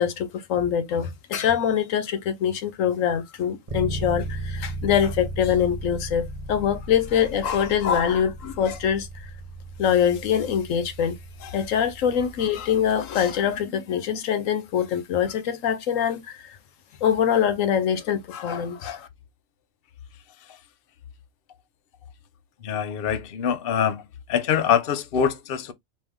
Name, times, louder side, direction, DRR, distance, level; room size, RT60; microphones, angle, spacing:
voice 1, 0.0-9.1 9.8-16.6 17.0-19.1, left 8 dB, 85° left, 1.1 m, -24 dB
Bass guitar, 3.7-13.5, right 1 dB, 35° right, 0.6 m, -36 dB
voice 2, 22.6-24.0 24.3-25.7, left 8 dB, 55° left, 0.8 m, -24 dB
4.6 x 2.7 x 3.5 m
omnidirectional pair, 1.3 m